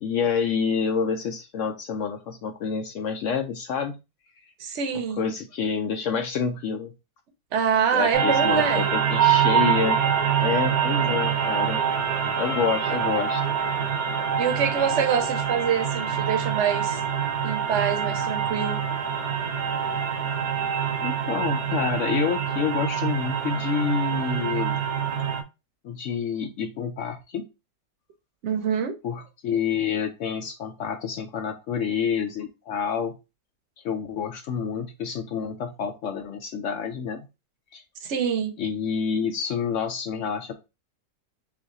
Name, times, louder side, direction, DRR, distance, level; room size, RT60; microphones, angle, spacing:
voice 1, 0.0-4.0 4.9-6.9 7.9-10.1 10.4-11.8 12.4-13.6 21.0-24.8 25.8-27.5 29.0-33.2 33.8-37.2 37.7-37.8 38.6-40.5, left 6 dB, 75° left, 0.7 m, -28 dB
voice 2, 4.6-5.2 7.5-8.9 12.9-13.0 14.4-17.0 17.4-18.8 28.4-28.9 38.0-38.5, right 7 dB, 55° right, 0.9 m, -25 dB
sound 1, 8.1-25.4, right 8 dB, 75° right, 1.3 m, -25 dB
3.6 x 3.1 x 3.9 m
omnidirectional pair, 1.8 m